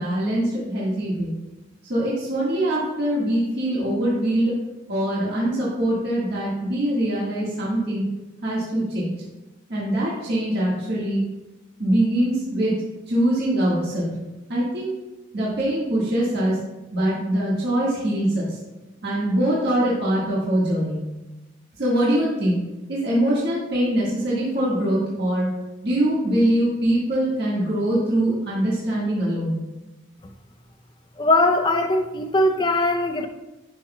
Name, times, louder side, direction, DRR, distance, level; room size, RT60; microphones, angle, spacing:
voice 1, 0.0-1.3 1.9-4.6 4.9-8.0 8.4-9.1 9.7-11.2 11.8-12.8 13.1-14.1 14.5-14.9 15.3-16.6 16.9-18.6 19.0-21.0 21.8-22.6 22.9-25.5 25.8-29.5, right 1 dB, 55° right, -7 dB, 1.6 m, -23 dB
voice 2, 31.2-33.3, left 2 dB, 25° left, 5 dB, 0.5 m, -20 dB
10.5 x 5.9 x 2.2 m, 1.1 s
head